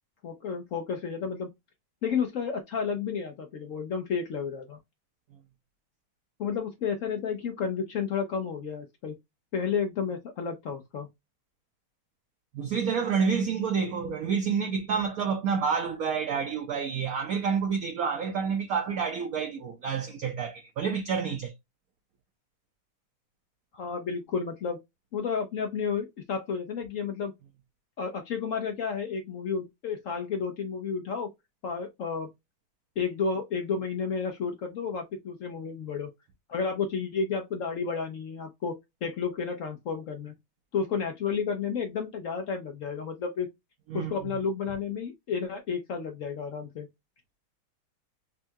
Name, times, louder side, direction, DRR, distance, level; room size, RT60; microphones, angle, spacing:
voice 1, 0.2-1.5 2.0-4.8 6.4-9.2 9.5-11.1 23.7-24.8 25.1-27.3 28.0-31.3 31.6-32.3 33.0-36.1 36.5-38.8 39.0-40.3 40.7-43.5 43.9-46.9, left 6 dB, 90° left, 0.6 m, -31 dB
voice 2, 12.5-21.5 43.9-44.3, right 6 dB, 65° right, 0.9 m, -29 dB
5.4 x 2.3 x 2.6 m
omnidirectional pair, 2.2 m